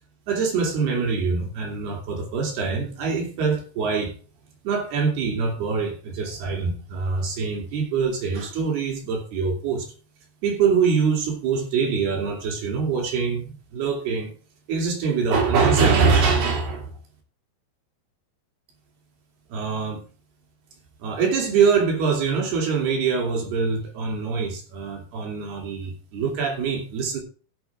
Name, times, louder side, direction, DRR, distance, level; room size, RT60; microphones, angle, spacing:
voice 1, 0.3-4.1 4.6-9.9 10.4-14.3 14.7-16.9 19.5-20.0 21.0-27.2, right 5 dB, 65° right, 2 dB, 4.9 m, -24 dB
16.0 x 8.0 x 3.6 m, 0.38 s
omnidirectional pair, 4.9 m